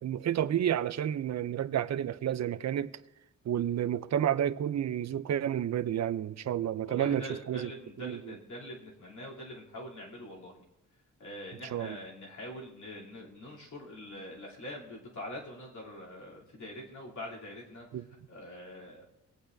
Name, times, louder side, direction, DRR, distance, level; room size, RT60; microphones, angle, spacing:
voice 1, 0.0-2.9 3.5-7.7 8.0-8.2 11.7-12.0 17.9-18.1, right 10 dB, 55° right, 0.5 m, -30 dB
voice 2, 6.8-10.6 11.2-17.9 18.3-19.0, left 1 dB, 65° left, 3.2 m, -44 dB
21.0 x 8.6 x 2.6 m
wide cardioid pair, 110°, 32 cm